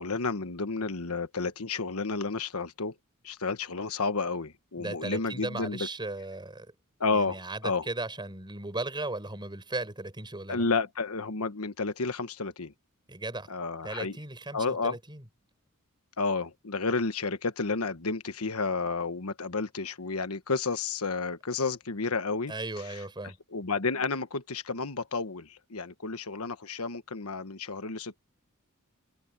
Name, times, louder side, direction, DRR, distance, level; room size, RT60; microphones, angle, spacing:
voice 1, 0.0-2.9 3.2-5.8 7.0-7.8 10.5-12.7 13.5-14.2 14.5-15.0 16.2-22.5 23.5-28.2, left 4 dB, 75° left, 1.3 m, -31 dB
voice 2, 4.8-6.7 7.1-10.6 13.1-13.5 13.8-15.3 22.5-23.4, right 2 dB, 20° right, 6.1 m, -36 dB
open air
head